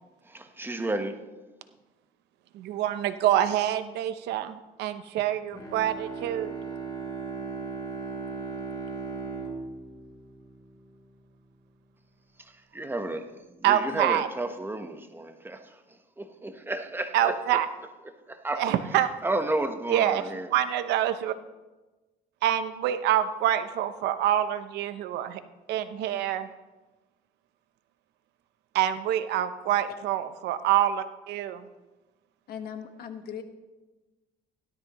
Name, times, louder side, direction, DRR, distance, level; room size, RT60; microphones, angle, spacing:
voice 1, 0.2-1.2 12.4-15.8 16.2-17.6 18.3-18.6 19.2-20.5, right 2 dB, 10° right, 1.1 m, -32 dB
voice 2, 2.5-6.5 13.6-14.3 17.1-17.7 18.6-19.1 19.9-20.2 20.5-21.4 22.4-25.4 25.7-26.5 28.7-31.7, right 11 dB, 85° right, 0.8 m, -26 dB
Bowed string instrument, 5.5-11.1, right 4 dB, 25° left, 3.1 m, -37 dB
voice 3, 32.5-33.4, left 8 dB, 65° left, 1.4 m, -38 dB
17.0 x 12.0 x 3.1 m
cardioid pair, 110°, 17 cm